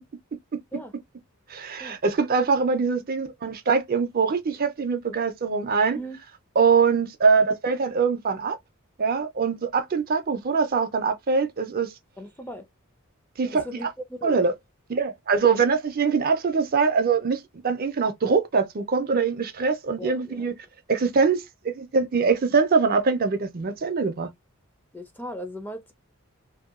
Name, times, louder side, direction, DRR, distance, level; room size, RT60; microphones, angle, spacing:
voice 1, 1.5-6.0 6.6-8.6 9.0-11.9 13.4-13.9 14.2-14.5 14.9-20.5 20.9-24.3, right 5 dB, 45° right, 0.5 m, -23 dB
voice 2, 12.2-12.7 13.6-14.4 15.4-15.6 20.0-20.5 24.9-25.9, equal, 10° left, 0.5 m, -37 dB
2.7 x 2.2 x 2.4 m
head